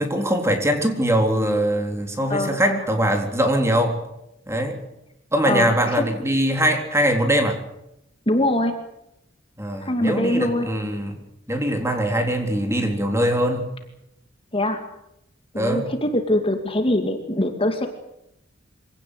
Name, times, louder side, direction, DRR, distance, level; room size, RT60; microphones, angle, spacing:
voice 1, 0.0-4.0 4.5-4.8 5.3-7.6 9.6-11.2 11.5-13.7 15.5-15.9, equal, 15° right, 5 dB, 3.8 m, -22 dB
voice 2, 2.3-2.8 5.5-6.1 8.3-8.7 9.8-10.7 14.5-14.8 15.5-17.9, left 1 dB, 30° left, 6 dB, 2.5 m, -23 dB
25.5 x 17.5 x 8.3 m, 0.82 s
head